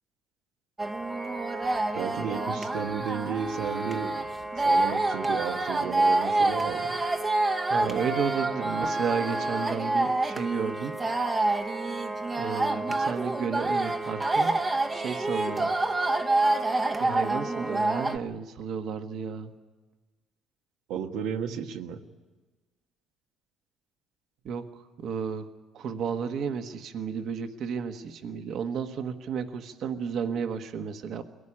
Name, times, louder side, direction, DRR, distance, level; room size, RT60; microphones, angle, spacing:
sound 1, 0.8-18.2, right 2 dB, 15° right, 0.9 m, -27 dB
voice 1, 1.9-4.1 4.6-7.0 20.9-22.0, right 7 dB, 80° right, 5 dB, 1.6 m, -33 dB
voice 2, 7.6-10.9 12.4-14.6 14.9-15.8 17.0-19.5 24.4-24.7 25.0-25.5 25.7-31.2, right 6 dB, 55° right, 8 dB, 1.3 m, -32 dB
22.0 x 17.5 x 10.0 m, 1.3 s
cardioid pair, 130°, 0 cm